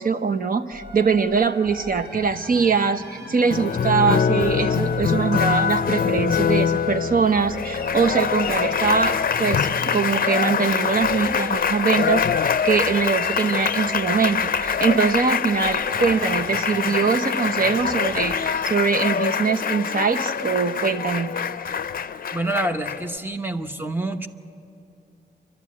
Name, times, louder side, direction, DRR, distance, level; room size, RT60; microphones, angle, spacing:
voice 1, 0.0-21.3, right 5 dB, 50° right, 9 dB, 0.9 m, -22 dB
sound 1, 0.7-18.4, right 1 dB, 70° right, 6.9 m, -39 dB
Applause, 3.5-23.2, left 7 dB, 55° left, 0.5 m, -24 dB
voice 2, 22.3-24.3, right 1 dB, 10° right, 7 dB, 1.0 m, -27 dB
28.0 x 12.5 x 8.5 m, 2.5 s
wide cardioid pair, 95°, 18 cm